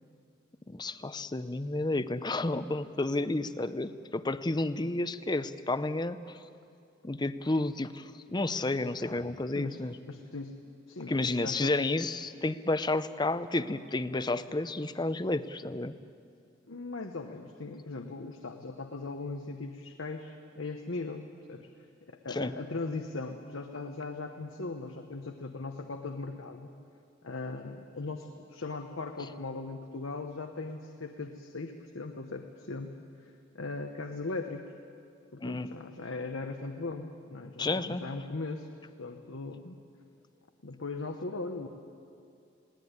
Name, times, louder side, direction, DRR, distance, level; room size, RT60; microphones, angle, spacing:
voice 1, 0.7-6.4 7.0-10.0 11.1-15.9 22.3-22.5 35.4-35.7 37.6-38.0, left 2 dB, 20° left, 13 dB, 0.6 m, -31 dB
voice 2, 9.5-10.6 10.9-11.8 16.7-26.7 27.2-34.7 35.3-38.7 39.0-39.8 40.6-41.7, left 3 dB, 85° left, 4 dB, 1.1 m, -39 dB
21.0 x 17.5 x 9.5 m, 2.4 s
head